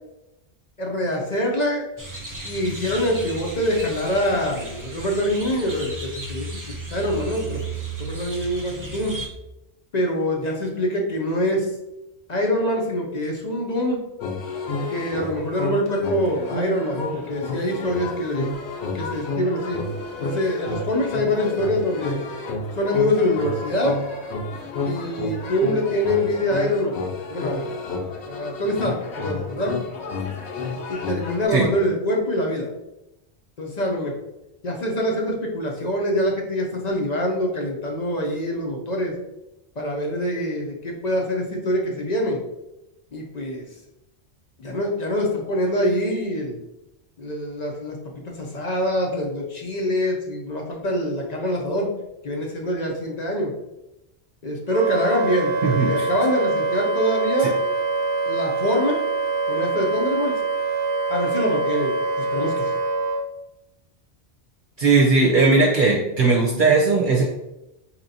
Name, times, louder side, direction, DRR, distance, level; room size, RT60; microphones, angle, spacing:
voice 1, 0.8-1.9 2.4-7.6 8.0-9.1 9.9-11.7 12.3-14.0 14.9-18.5 18.9-19.8 20.2-22.2 22.8-24.0 24.8-27.0 27.3-27.7 28.3-29.7 30.9-32.7 33.6-34.2 34.6-39.1 39.8-42.4 43.1-43.6 44.6-46.6 47.2-48.0 48.4-51.9 52.2-53.5 54.4-57.5 58.3-59.0 59.5-60.4 61.1-62.7, equal, 50° left, 0 dB, 0.6 m, -24 dB
sound 1, 2.0-9.3, right 3 dB, 25° right, 0.5 m, -34 dB
sound 2, 14.2-31.4, left 3 dB, 75° left, 0.9 m, -30 dB
Wind instrument woodwind instrument, 54.7-63.2, right 3 dB, 85° right, 0.9 m, -24 dB
voice 2, 55.6-56.1 64.8-67.2, right 3 dB, 50° right, -4 dB, 0.8 m, -18 dB
4.2 x 2.9 x 2.7 m, 0.91 s
omnidirectional pair, 1.1 m